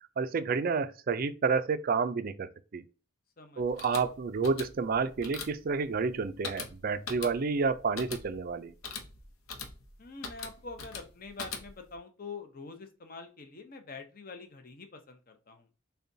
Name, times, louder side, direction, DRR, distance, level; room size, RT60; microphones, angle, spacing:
voice 1, 0.2-2.8 3.6-8.7, right 5 dB, 45° right, 0.4 m, -30 dB
voice 2, 3.4-4.0 10.0-15.7, left 4 dB, 45° left, 0.7 m, -46 dB
sound 1, 3.6-12.0, left 4 dB, 85° left, 0.8 m, -43 dB
6.6 x 2.3 x 2.7 m
head